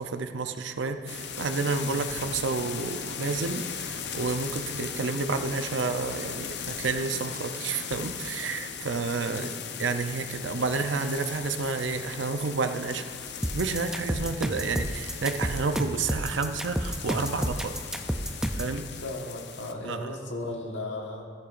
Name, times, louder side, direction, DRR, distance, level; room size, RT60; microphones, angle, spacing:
voice 1, 0.0-9.5 9.8-13.1 13.5-17.7 18.5-18.9 19.8-20.1, right 4 dB, 90° right, 8 dB, 0.6 m, -30 dB
sound 1, 1.1-19.7, left 7 dB, 65° left, 0.7 m, -38 dB
sound 2, 13.4-18.7, equal, 5° right, 0.4 m, -30 dB
voice 2, 19.0-21.3, left 2 dB, 85° left, 0 dB, 1.4 m, -36 dB
15.0 x 10.5 x 2.5 m, 2.5 s
head